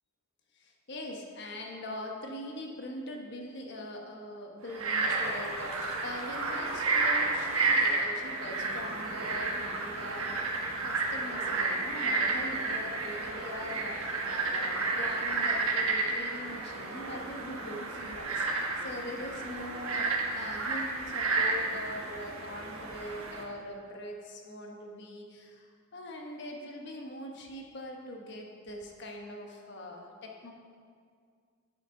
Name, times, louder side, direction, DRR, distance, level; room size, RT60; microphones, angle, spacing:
voice 1, 0.6-10.5 10.8-30.5, left 1 dB, 55° left, 1 dB, 1.1 m, -42 dB
Frog, 4.7-23.4, right 3 dB, 85° right, 1.2 m, -31 dB
8.7 x 8.3 x 3.8 m, 2.1 s
head